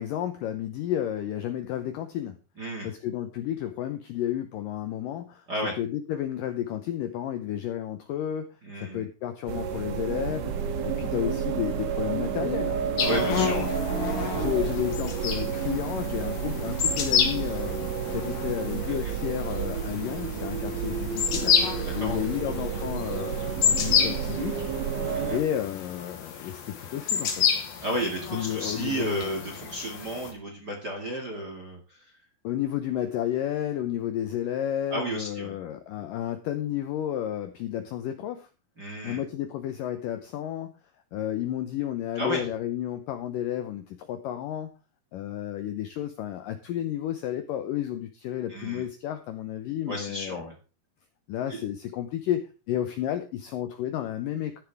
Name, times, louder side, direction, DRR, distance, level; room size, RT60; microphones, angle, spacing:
voice 1, 0.0-2.4 2.8-5.4 5.8-8.5 8.8-13.6 14.3-21.5 21.9-24.7 25.3-27.5 28.3-29.2 32.4-38.5 39.0-40.7 41.1-44.7 45.1-50.5 51.3-54.6, left 11 dB, 90° left, 8 dB, 1.9 m, -32 dB
voice 2, 2.6-2.9 5.5-5.7 8.6-9.0 13.0-13.7 18.9-19.1 21.8-22.2 25.1-25.4 27.8-32.0 34.9-35.6 38.8-39.2 42.1-42.4 48.5-48.8 49.8-50.5 51.5-51.6, right 1 dB, 40° right, 1 dB, 1.6 m, -33 dB
sound 1, 9.5-25.4, right 7 dB, 65° right, 1.8 m, -30 dB
sound 2, 13.0-30.3, left 7 dB, 65° left, 3.4 m, -30 dB
13.0 x 9.9 x 3.5 m, 0.33 s
omnidirectional pair, 5.0 m